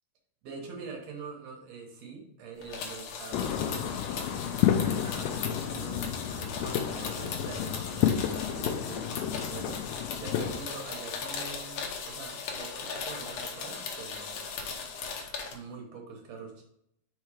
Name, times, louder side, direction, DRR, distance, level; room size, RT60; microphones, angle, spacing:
voice 1, 0.4-6.1 6.4-14.5 15.5-16.7, right 5 dB, 65° right, 1 dB, 2.1 m, -44 dB
sound 1, 2.6-15.5, left 5 dB, 65° left, 1.7 m, -38 dB
sound 2, 3.3-10.6, left 10 dB, 85° left, 2.3 m, -31 dB
5.5 x 4.4 x 4.8 m, 0.74 s
omnidirectional pair, 4.0 m